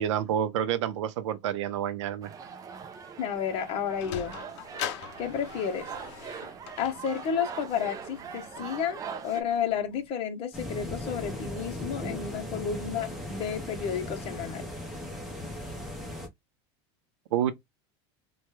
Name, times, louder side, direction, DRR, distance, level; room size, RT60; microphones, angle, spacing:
voice 1, 0.0-2.3 17.3-17.5, right 10 dB, 85° right, 0.6 m, -28 dB
sound 1, 2.2-9.4, right 6 dB, 25° right, 0.4 m, -42 dB
voice 2, 3.2-4.4 5.2-5.9 6.8-14.7, left 7 dB, 40° left, 0.8 m, -31 dB
Sliding door, 3.5-10.1, left 10 dB, 70° left, 0.5 m, -42 dB
sound 2, 10.5-16.3, left 1 dB, ahead, 0.9 m, -37 dB
3.2 x 2.2 x 3.0 m
supercardioid pair, 135°, 15 cm